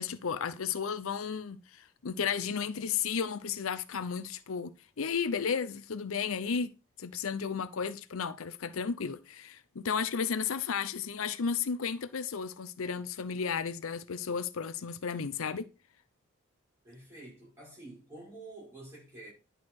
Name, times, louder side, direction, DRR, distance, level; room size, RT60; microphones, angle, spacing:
voice 1, 0.0-6.7 7.0-15.7, left 6 dB, 85° left, 0.6 m, -33 dB
voice 2, 16.8-19.3, right 2 dB, 10° right, 5.2 m, -48 dB
10.5 x 4.6 x 4.7 m
head